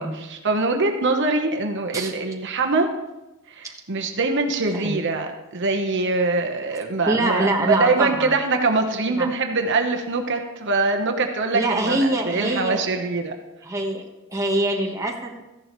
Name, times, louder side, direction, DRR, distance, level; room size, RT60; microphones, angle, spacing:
voice 1, 0.0-2.9 3.5-13.3, right 3 dB, 55° right, 4 dB, 1.0 m, -23 dB
voice 2, 7.1-8.3 9.1-9.3 11.5-12.8 13.6-15.4, right 1 dB, 15° right, 1 dB, 1.2 m, -24 dB
14.0 x 11.0 x 3.1 m, 1.0 s
head